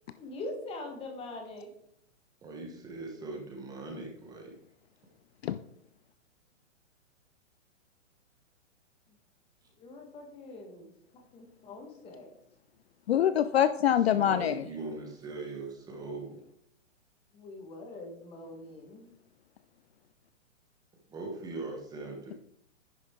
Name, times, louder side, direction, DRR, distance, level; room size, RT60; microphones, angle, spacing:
voice 1, 0.2-1.7 9.8-10.9 11.3-12.3 17.3-19.1, left 2 dB, 15° left, 3 dB, 1.5 m, -43 dB
voice 2, 2.4-4.5 14.1-16.4 21.1-22.3, right 3 dB, 10° right, 1 dB, 1.1 m, -40 dB
voice 3, 13.1-14.6, left 10 dB, 55° left, 13 dB, 0.5 m, -25 dB
10.0 x 6.2 x 3.7 m, 0.72 s
hypercardioid pair, 150°, 39 cm